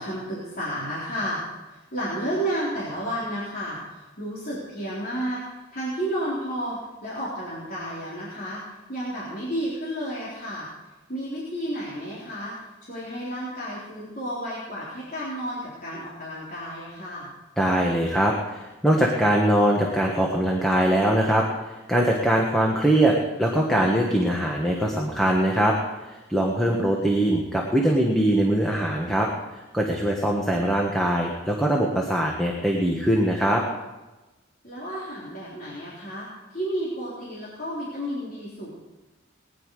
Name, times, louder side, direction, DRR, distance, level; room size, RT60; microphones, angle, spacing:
voice 1, 0.0-5.4 5.7-8.6 8.9-10.7 11.1-12.5 12.9-17.3 26.6-26.9 34.6-38.7, equal, 45° left, -8 dB, 4.1 m, -32 dB
voice 2, 17.6-29.3 29.7-33.6, right 1 dB, ahead, -2 dB, 1.4 m, -22 dB
20.0 x 10.5 x 4.9 m, 1.1 s
head